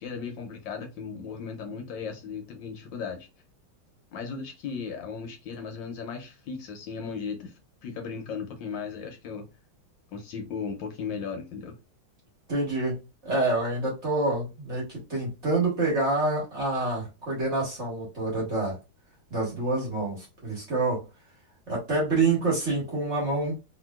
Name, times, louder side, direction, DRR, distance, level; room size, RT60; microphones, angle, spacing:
voice 1, 0.0-3.3 4.1-7.5 7.8-9.4 10.1-11.7, left 5 dB, 75° left, 1.3 m, -36 dB
voice 2, 12.5-18.8 19.3-21.0 21.7-23.6, right 2 dB, 40° right, 1.2 m, -27 dB
3.1 x 2.8 x 2.2 m
omnidirectional pair, 2.2 m